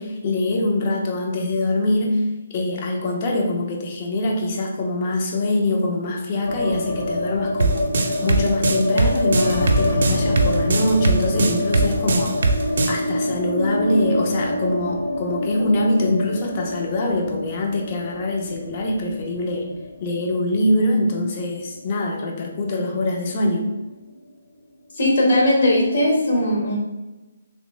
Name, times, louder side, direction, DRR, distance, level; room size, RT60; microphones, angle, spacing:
voice 1, 0.0-2.2 2.5-19.7 20.0-23.6, left 1 dB, 35° left, 1 dB, 0.6 m, -23 dB
sound 1, 6.4-22.6 22.8-22.9 23.2-23.9, left 1 dB, 75° left, 0.8 m, -26 dB
sound 2, 7.6-13.0, right 3 dB, 60° right, 0.5 m, -20 dB
voice 2, 24.9-26.8, left 1 dB, 60° left, -3 dB, 1.4 m, -18 dB
3.1 x 3.0 x 3.2 m, 1.1 s
hypercardioid pair, 155°, 0 cm